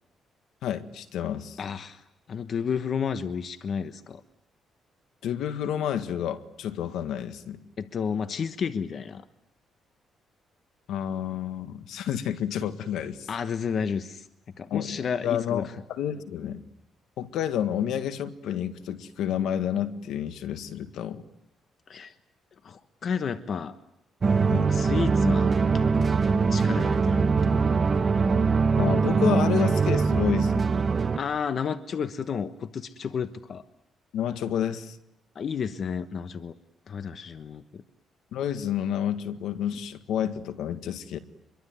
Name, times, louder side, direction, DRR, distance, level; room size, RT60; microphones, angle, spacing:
voice 1, 0.6-1.6 5.2-7.6 10.9-13.3 14.7-16.6 17.2-21.2 24.5-24.7 28.8-30.7 34.1-35.0 38.3-41.2, left 9 dB, 80° left, 10 dB, 1.8 m, -30 dB
voice 2, 1.6-4.2 7.8-9.2 13.3-14.3 14.6-15.7 21.9-22.1 22.6-23.7 24.7-26.2 26.5-28.1 31.2-33.6 35.3-36.5 36.9-37.8, left 6 dB, 55° left, 11 dB, 1.2 m, -32 dB
sound 1, 24.2-31.2, right 4 dB, 35° right, 1.1 m, -22 dB
26.0 x 23.0 x 9.5 m, 0.82 s
cardioid pair, 90°, 0 cm